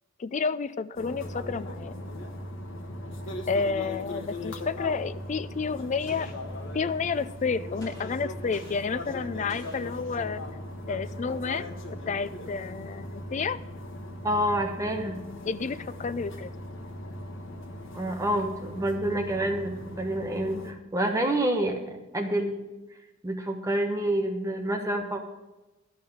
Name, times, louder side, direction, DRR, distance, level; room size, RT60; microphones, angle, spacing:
voice 1, 0.2-2.0 3.5-6.3 6.7-10.4 10.9-11.7 12.1-13.6 15.4-16.5, left 5 dB, 35° left, 15 dB, 0.4 m, -30 dB
sound 1, 0.9-20.7, left 1 dB, 65° left, 1.3 m, -39 dB
Gunshot gunfire, 6.1-7.1 7.8-10.6, equal, 20° left, 2.8 m, -51 dB
voice 2, 14.2-15.2 17.9-22.6 23.2-25.2, right 1 dB, 15° right, 3 dB, 1.1 m, -28 dB
12.0 x 5.6 x 7.7 m, 1.1 s
head